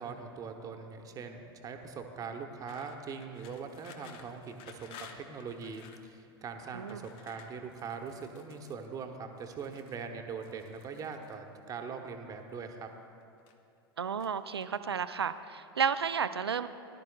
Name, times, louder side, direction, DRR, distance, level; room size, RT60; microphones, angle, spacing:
voice 1, 0.0-12.9, right 5 dB, 25° right, 5 dB, 1.0 m, -42 dB
sound 1, 2.7-6.1 6.8-8.9 9.4-10.0 10.4-11.3 12.2-12.9 13.2-13.8 14.2-15.0, left 6 dB, 40° left, 0.9 m, -54 dB
voice 2, 6.7-7.1 14.0-16.7, right 6 dB, 80° right, 12 dB, 0.4 m, -32 dB
18.5 x 11.5 x 2.3 m, 2.6 s
figure-of-eight pair, 85°, 13 cm